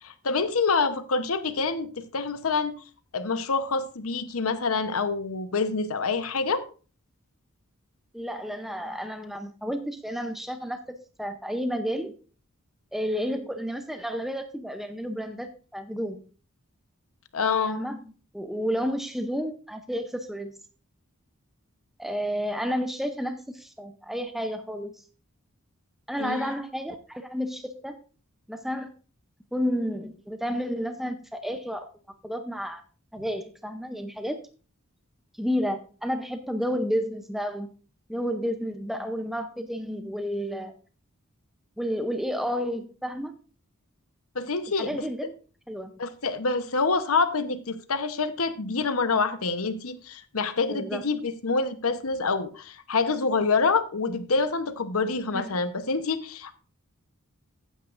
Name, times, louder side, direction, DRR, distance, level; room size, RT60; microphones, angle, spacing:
voice 1, 0.0-2.7 3.1-6.6 17.3-17.8 26.2-26.5 44.3-45.0 46.0-56.5, left 4 dB, 80° left, 1.0 m, -26 dB
voice 2, 8.1-12.1 12.9-16.2 17.7-18.0 18.3-20.5 22.0-25.0 26.1-28.0 28.5-28.9 29.5-31.9 32.2-32.8 33.1-34.4 35.4-37.7 38.1-40.7 41.8-43.3 44.8-45.3 45.7-45.9 50.7-51.0 55.3-55.6, equal, ahead, 0.6 m, -31 dB
14.0 x 9.3 x 2.5 m
head